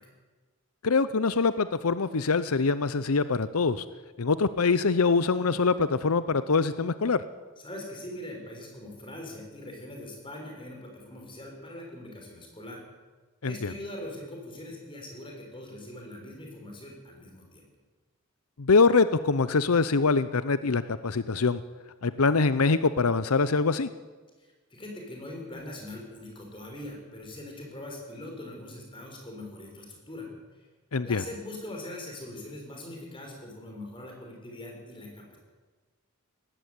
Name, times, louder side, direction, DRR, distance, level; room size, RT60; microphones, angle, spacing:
voice 1, 0.8-3.9 4.2-7.2 13.4-13.7 18.6-21.6 22.0-23.9 30.9-31.2, left 4 dB, 90° left, 14 dB, 0.8 m, -24 dB
voice 2, 7.6-12.8 13.4-17.7 24.4-30.3 30.5-30.7 31.0-35.4, left 1 dB, 25° left, 1 dB, 5.9 m, -42 dB
18.0 x 15.5 x 9.6 m, 1.4 s
head